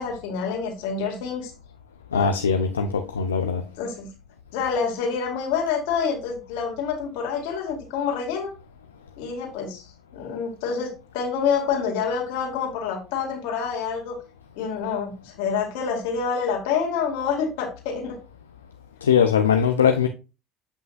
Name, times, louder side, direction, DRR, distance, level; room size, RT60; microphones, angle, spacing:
voice 1, 0.0-1.5 2.1-2.3 3.8-4.1 4.5-8.5 9.2-14.2 14.6-18.2, left 6 dB, 70° left, 2.2 m, -27 dB
voice 2, 2.1-3.6 19.0-20.1, left 7 dB, 90° left, 0.5 m, -21 dB
8.1 x 5.5 x 2.5 m
hypercardioid pair, 65°, 0 cm